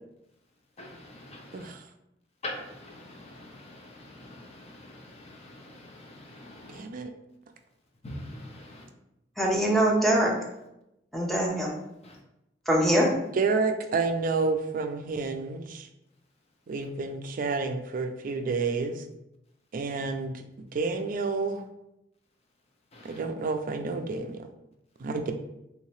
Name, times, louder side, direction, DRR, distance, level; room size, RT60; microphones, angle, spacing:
voice 1, 0.8-1.7 2.4-6.8 8.0-8.8 12.0-12.2 22.9-23.2, left 1 dB, 35° left, 0.6 m, -44 dB
voice 2, 1.5-1.8 6.7-7.1 13.3-15.9 16.7-19.0 19.7-20.4 20.7-21.6 23.0-24.5 25.0-25.3, right 4 dB, 50° right, 0.4 m, -29 dB
voice 3, 9.4-10.3 11.1-11.7 12.7-13.1, right 1 dB, ahead, 0.6 m, -23 dB
3.2 x 2.7 x 3.1 m
head